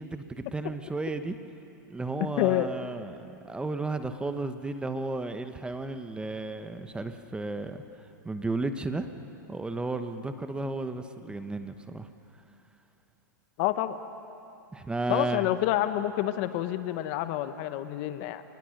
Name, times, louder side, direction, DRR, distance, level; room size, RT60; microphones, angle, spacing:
voice 1, 0.0-1.4 1.9-7.8 8.2-9.1 9.5-12.1 14.7-15.5, right 2 dB, 10° right, 9 dB, 1.1 m, -33 dB
voice 2, 2.4-2.7 13.6-14.0 15.1-18.4, left 14 dB, 50° left, 11 dB, 1.1 m, -28 dB
26.5 x 20.5 x 6.6 m, 2.9 s
hypercardioid pair, 115°, 11 cm